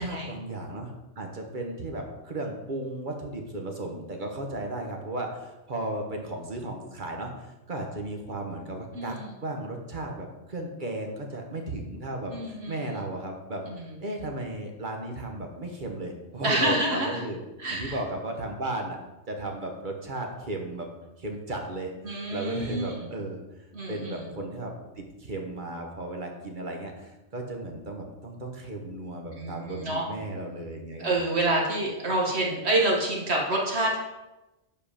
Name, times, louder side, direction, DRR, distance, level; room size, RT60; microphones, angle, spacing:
voice 1, 0.0-13.6 14.0-17.4 17.7-19.0 19.3-20.9 21.2-21.9 22.3-23.4 23.9-31.1, right 2 dB, 45° right, 2 dB, 1.2 m, -35 dB
voice 2, 8.9-9.3 12.3-12.9 13.7-13.9 16.4-17.2 17.6-18.0 22.0-23.1 23.7-24.3 29.4-30.0 31.0-34.0, right 1 dB, 60° right, -2 dB, 1.6 m, -27 dB
7.5 x 4.9 x 5.0 m, 1.0 s
omnidirectional pair, 1.3 m